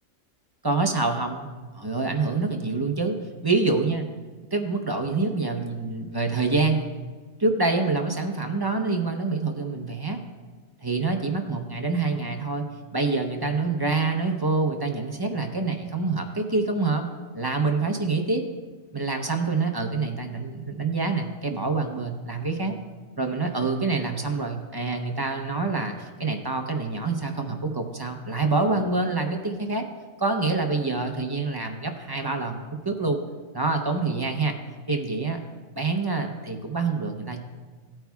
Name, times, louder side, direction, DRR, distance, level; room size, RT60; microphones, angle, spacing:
voice 1, 0.6-1.5 1.7-3.2 3.4-4.1 4.5-6.9 7.4-10.2 10.8-12.7 12.9-17.1 17.3-18.4 18.9-22.7 23.2-29.9 30.2-33.2 33.5-34.6 34.9-35.4 35.8-37.4, right 3 dB, 25° right, 3 dB, 0.6 m, -26 dB
16.5 x 8.8 x 2.3 m, 1.4 s
omnidirectional pair, 1.4 m